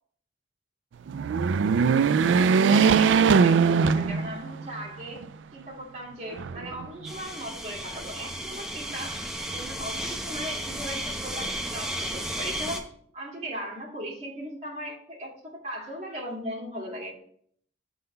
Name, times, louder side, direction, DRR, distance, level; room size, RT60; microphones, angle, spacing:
sound 1, 1.1-4.7 5.2-5.3 6.3-7.1, right 5 dB, 85° right, 0.3 m, -21 dB
voice 1, 2.2-5.2 5.5-9.3 9.5-12.9 13.1-17.2, equal, 40° right, -2 dB, 2.2 m, -38 dB
sound 2, 7.1-12.8, equal, 5° right, 0.8 m, -34 dB
6.8 x 3.9 x 5.2 m, 0.63 s
head